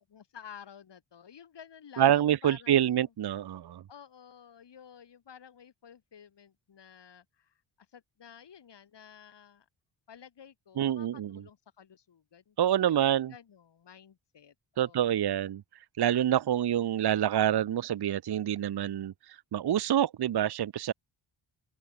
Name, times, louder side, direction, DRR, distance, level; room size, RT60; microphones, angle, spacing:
voice 1, 0.0-3.1 3.9-9.7 10.1-15.2, left 8 dB, 55° left, 4.5 m, -53 dB
voice 2, 2.0-3.8 10.8-11.3 12.6-13.3 14.8-15.6 16.0-19.1 19.5-20.9, right 10 dB, 50° right, 0.9 m, -26 dB
open air
wide cardioid pair, 155°, 49 cm